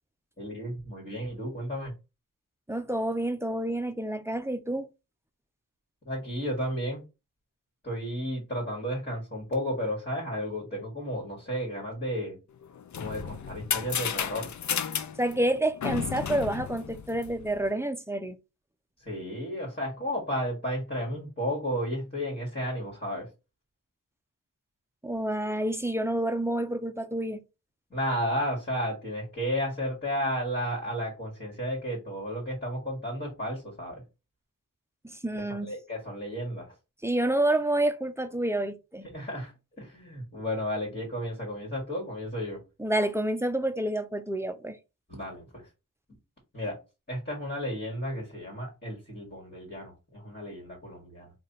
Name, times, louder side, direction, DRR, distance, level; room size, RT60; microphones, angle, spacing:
voice 1, 0.4-1.9 6.1-7.0 7.8-12.4 13.0-14.5 19.0-23.3 27.9-34.0 35.5-36.8 39.1-42.6 45.1-45.7 46.5-46.8 47.1-51.3, equal, 30° left, 1.9 m, -33 dB
voice 2, 2.7-4.9 15.2-18.4 25.0-27.4 35.0-35.7 37.0-39.1 42.8-44.8, right 1 dB, 10° right, 0.5 m, -28 dB
sound 1, 12.6-17.6, left 7 dB, 55° left, 0.5 m, -33 dB
3.2 x 2.4 x 4.0 m
cardioid pair, 60°, 34 cm